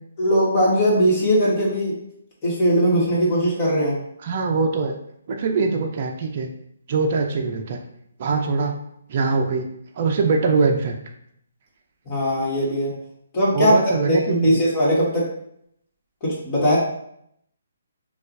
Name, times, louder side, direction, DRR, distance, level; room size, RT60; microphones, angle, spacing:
voice 1, 0.2-2.0 2.4-4.0 12.1-12.9 13.3-13.7 14.0-15.2 16.2-16.8, equal, 30° left, -6 dB, 1.4 m, -20 dB
voice 2, 4.2-4.9 5.3-6.5 6.9-7.8 8.2-8.8 9.1-9.7 10.0-11.0 13.5-14.6, right 4 dB, 45° right, 2 dB, 0.4 m, -22 dB
4.3 x 2.3 x 2.6 m, 0.73 s
hypercardioid pair, 155°, 0 cm